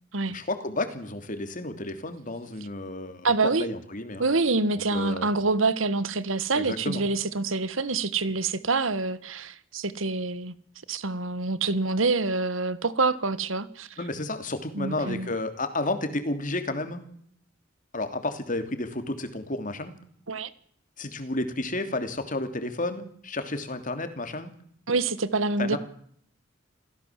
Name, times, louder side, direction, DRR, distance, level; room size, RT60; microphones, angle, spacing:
voice 1, 0.3-4.2 4.7-5.3 6.5-7.0 14.0-17.0 17.9-19.9 21.0-24.5 25.6-25.8, left 2 dB, 40° left, 3.0 m, -31 dB
voice 2, 3.2-3.6 4.2-10.5 10.9-14.0 14.7-15.3 20.3-20.5 24.9-25.8, right 3 dB, 80° right, 1.5 m, -26 dB
28.0 x 17.0 x 7.5 m
head